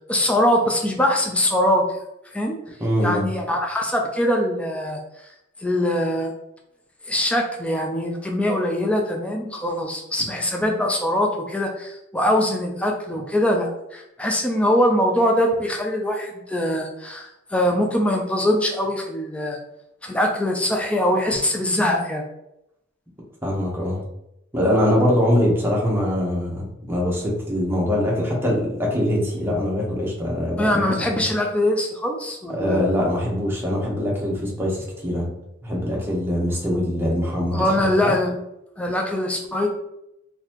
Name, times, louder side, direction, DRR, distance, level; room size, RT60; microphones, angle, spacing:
voice 1, 0.1-1.8 2.3-2.6 3.0-5.0 5.6-6.3 7.1-19.6 20.0-22.2 30.6-32.9 37.5-38.4 38.8-39.7, left 1 dB, 5° left, 1 dB, 0.4 m, -22 dB
voice 2, 2.8-3.2 23.4-24.0 24.5-30.9 31.2-31.3 32.5-35.3 35.6-38.1, left 1 dB, 10° right, -3 dB, 1.0 m, -23 dB
3.9 x 2.7 x 2.9 m, 0.83 s
head